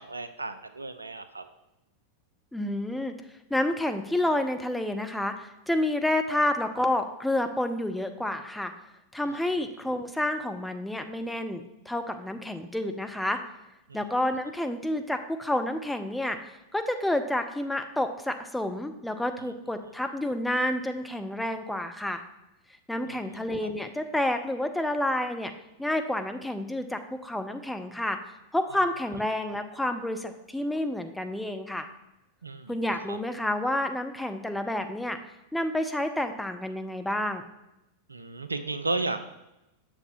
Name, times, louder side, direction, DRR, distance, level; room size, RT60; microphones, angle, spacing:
voice 1, 0.0-1.4 6.3-6.4 13.9-14.0 23.6-23.7 32.4-32.8 33.1-33.2 38.1-39.2, right 3 dB, 80° right, 10 dB, 0.4 m, -33 dB
voice 2, 2.5-3.1 3.5-8.7 9.1-13.4 13.9-22.2 22.9-25.5 25.8-28.2 28.5-31.9 32.7-35.2 35.5-37.4, left 1 dB, 5° left, 6 dB, 0.5 m, -29 dB
8.1 x 6.6 x 3.0 m, 0.92 s
figure-of-eight pair, 90°, 0 cm